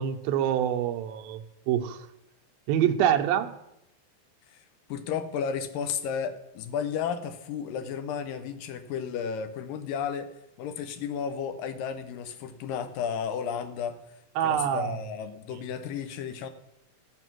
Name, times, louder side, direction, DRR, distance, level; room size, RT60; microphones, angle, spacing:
voice 1, 0.0-2.1 2.7-3.5 14.4-15.0, right 10 dB, 85° right, 6 dB, 2.6 m, -26 dB
voice 2, 4.9-10.3 10.6-14.0 14.4-16.5, left 7 dB, 75° left, 8 dB, 2.5 m, -33 dB
14.5 x 7.2 x 6.1 m, 0.83 s
omnidirectional pair, 4.2 m